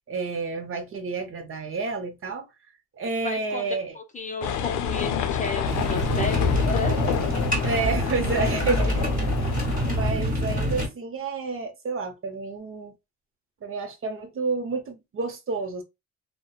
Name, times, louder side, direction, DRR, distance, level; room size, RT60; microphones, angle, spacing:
voice 1, 0.1-2.5 3.0-4.0 7.6-9.5 9.9-12.9 13.6-15.8, right 3 dB, 45° right, 0.7 m, -30 dB
voice 2, 3.2-7.0, left 4 dB, 25° left, 0.6 m, -33 dB
sound 1, 4.4-10.0, left 8 dB, 85° left, 0.5 m, -28 dB
sound 2, 5.7-10.9, equal, 25° right, 1.5 m, -26 dB
2.7 x 2.1 x 2.2 m
cardioid pair, 90°, 30 cm